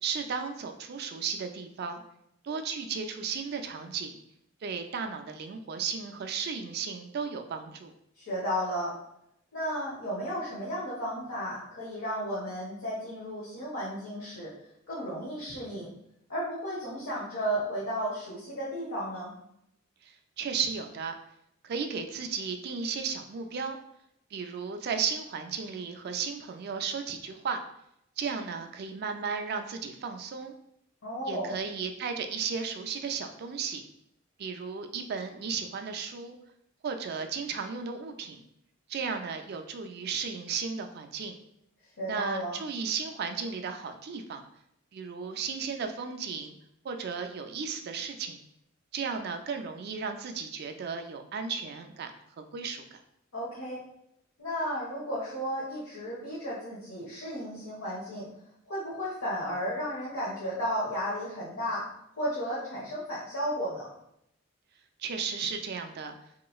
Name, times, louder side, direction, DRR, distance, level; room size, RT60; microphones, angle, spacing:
voice 1, 0.0-2.0 2.4-4.2 4.6-7.9 20.0-21.1 21.6-23.8 24.3-27.6 28.2-30.5 31.3-33.8 34.4-36.4 36.8-38.4 38.9-41.3 42.1-44.4 44.9-46.5 46.8-48.4 48.9-52.1 52.4-53.0 65.0-66.2, right 6 dB, 50° right, 6 dB, 0.3 m, -34 dB
voice 2, 8.2-9.0 9.5-14.6 14.9-15.9 16.3-19.3 31.0-31.6 42.0-42.6 53.3-53.8 54.4-58.3 58.7-61.9 62.2-63.9, equal, 80° left, -7 dB, 0.9 m, -33 dB
3.1 x 2.9 x 2.3 m, 0.77 s
head